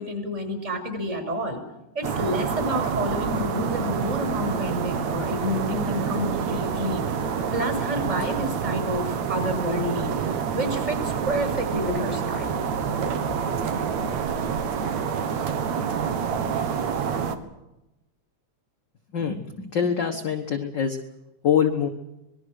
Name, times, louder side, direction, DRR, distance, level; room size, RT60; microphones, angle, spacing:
voice 1, 0.0-1.6 1.9-12.6, equal, 20° right, 5 dB, 6.0 m, -29 dB
sound 1, 2.0-17.4, right 6 dB, 65° right, 2.7 m, -27 dB
voice 2, 19.1-21.0 21.4-21.9, left 8 dB, 50° left, 4 dB, 1.6 m, -24 dB
26.5 x 20.5 x 6.5 m, 0.93 s
omnidirectional pair, 3.4 m